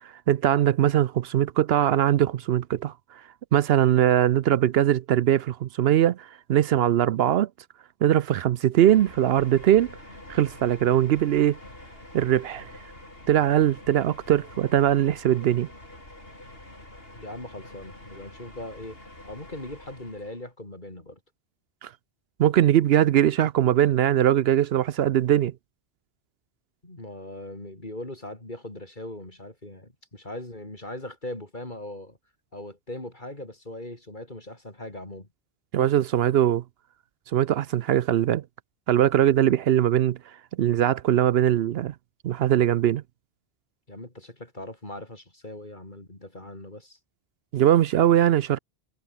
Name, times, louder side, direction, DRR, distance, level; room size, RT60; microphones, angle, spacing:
voice 1, 0.3-2.9 3.5-7.5 8.0-9.9 10.3-11.6 12.1-12.7 13.3-15.7 21.8-21.9 22.4-25.5 35.7-36.6 37.3-38.4 38.9-40.2 40.6-41.9 42.2-43.0 47.5-48.6, right 11 dB, 70° right, 0.8 m, -21 dB
sound 1, 8.9-20.5, left 1 dB, 65° left, 6.9 m, -46 dB
voice 2, 17.1-19.0 19.2-21.2 26.8-32.2 32.5-35.3 43.9-47.0, left 1 dB, 45° left, 4.6 m, -40 dB
omnidirectional pair, 1.1 m